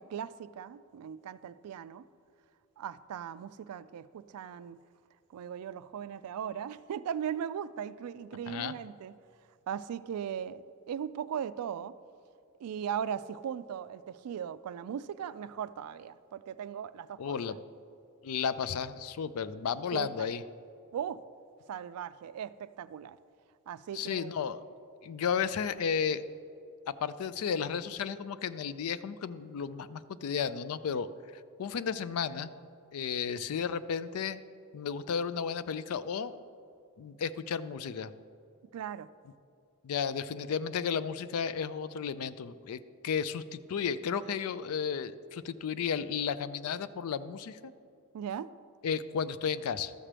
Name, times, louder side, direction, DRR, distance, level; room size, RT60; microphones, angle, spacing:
voice 1, 0.0-2.1 2.8-4.8 5.3-9.2 9.7-11.9 12.6-17.4 19.9-20.3 20.9-21.2 21.7-23.2 23.7-24.3 38.7-39.1 48.1-48.5, right 8 dB, 80° right, 0.3 m, -38 dB
voice 2, 17.2-17.6 18.2-20.4 23.9-24.6 25.0-26.3 26.9-31.1 31.6-32.5 32.9-34.4 34.7-36.4 37.0-38.1 39.8-47.7 48.8-49.9, left 7 dB, 70° left, 0.4 m, -33 dB
13.0 x 7.3 x 3.3 m
head